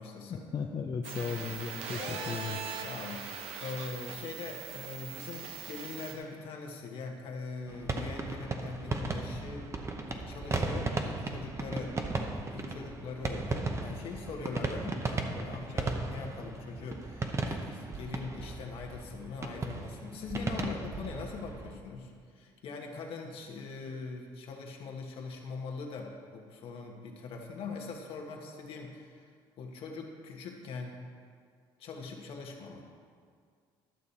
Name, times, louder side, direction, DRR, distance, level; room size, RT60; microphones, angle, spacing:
voice 1, 0.0-0.5 2.0-2.4 2.8-9.7 10.1-12.0 12.5-29.3 29.6-31.0 31.8-32.9, left 4 dB, 65° left, 1 dB, 1.4 m, -42 dB
voice 2, 0.5-2.6, left 6 dB, 40° left, 3 dB, 0.6 m, -35 dB
sound 1, 1.0-6.1, right 6 dB, 80° right, 1.0 m, -41 dB
sound 2, 7.7-21.8, right 3 dB, 30° right, 0.9 m, -36 dB
12.0 x 6.5 x 4.3 m, 2.1 s
supercardioid pair, 85°, 10 cm